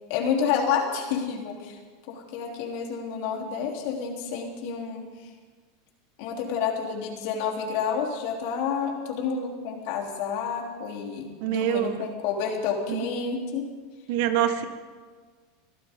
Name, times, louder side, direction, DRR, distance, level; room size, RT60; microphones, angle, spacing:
voice 1, 0.1-1.8 2.1-5.3 6.2-13.7, left 6 dB, 65° left, 1 dB, 3.4 m, -29 dB
voice 2, 11.4-12.0 12.9-13.1 14.1-14.7, right 10 dB, 65° right, 8 dB, 1.5 m, -25 dB
24.5 x 15.0 x 3.8 m, 1.5 s
supercardioid pair, 135°, 0 cm